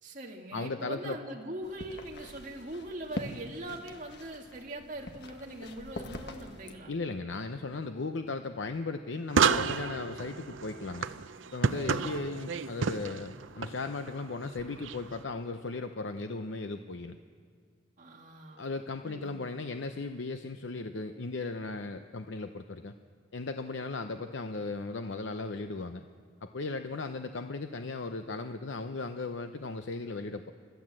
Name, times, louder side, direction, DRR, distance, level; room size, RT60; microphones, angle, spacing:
voice 1, 0.0-6.9 11.7-12.2 18.0-18.7 19.0-19.6, right 1 dB, 40° right, 0 dB, 2.2 m, -42 dB
voice 2, 0.5-1.2 6.9-11.1 11.5-17.2 18.6-22.9 23.3-26.1 26.4-30.5, left 3 dB, 75° left, 7 dB, 0.7 m, -36 dB
sound 1, 1.6-6.7, left 1 dB, 60° left, 1.4 m, -44 dB
sound 2, 9.3-15.2, right 5 dB, 85° right, 0.6 m, -31 dB
25.5 x 14.5 x 7.6 m, 2.1 s
head